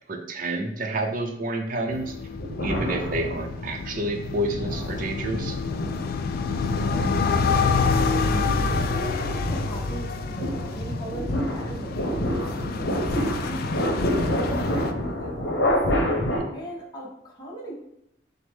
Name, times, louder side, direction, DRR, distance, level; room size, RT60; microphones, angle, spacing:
voice 1, 0.1-2.1 2.6-5.6 16.3-16.5, right 1 dB, 45° right, 3 dB, 0.5 m, -29 dB
sound 1, 1.9-14.9, left 5 dB, 55° left, 0.3 m, -28 dB
sound 2, 2.3-3.8 4.3-16.4, equal, 70° left, 0.8 m, -28 dB
voice 2, 6.8-10.1 10.4-13.6 14.0-15.7 16.5-17.7, right 1 dB, 20° left, -4 dB, 0.9 m, -37 dB
6.0 x 2.0 x 3.5 m, 0.83 s
head